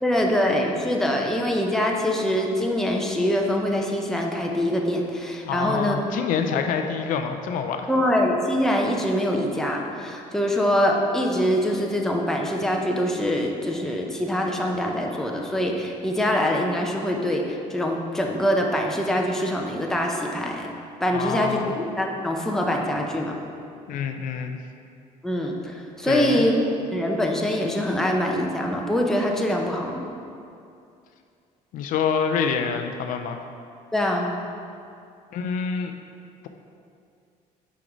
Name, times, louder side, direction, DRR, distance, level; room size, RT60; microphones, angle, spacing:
voice 1, 0.0-6.0 7.9-20.7 21.0-23.3 25.2-30.0 33.9-34.3, equal, 5° left, 0 dB, 0.7 m, -24 dB
voice 2, 5.4-7.9 21.1-21.7 23.9-24.6 26.0-26.5 31.7-33.4 35.3-35.9, left 6 dB, 65° left, 6 dB, 0.5 m, -26 dB
6.1 x 4.7 x 5.0 m, 2.5 s
cardioid pair, 120°, 15 cm